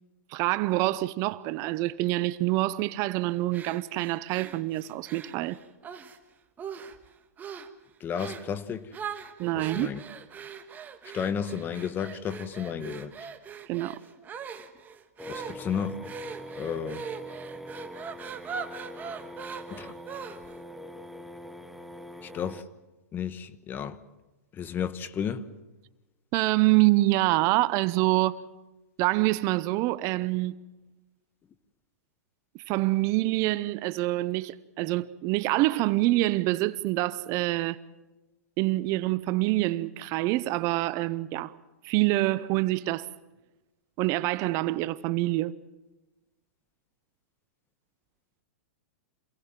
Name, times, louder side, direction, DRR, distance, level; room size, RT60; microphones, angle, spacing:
voice 1, 0.3-5.6 9.4-9.9 13.7-13.9 26.3-28.4 29.0-30.7 32.5-37.8 38.6-41.6 41.8-43.1 44.0-45.5, right 18 dB, 40° right, 0.7 m, -26 dB
sound 1, 3.5-6.2 6.6-7.1 7.4-7.7 8.2-8.5 8.9-20.6, right 6 dB, 20° right, 1.5 m, -41 dB
voice 2, 8.0-8.9 9.6-10.0 11.0-13.1 15.3-16.0 16.6-17.0 19.7-19.9 22.2-22.6 23.1-24.0 24.5-25.5, left 8 dB, 25° left, 1.2 m, -33 dB
sound 2, 15.2-22.6, equal, ahead, 1.3 m, -42 dB
27.0 x 18.0 x 7.5 m
hypercardioid pair, 125°, 8 cm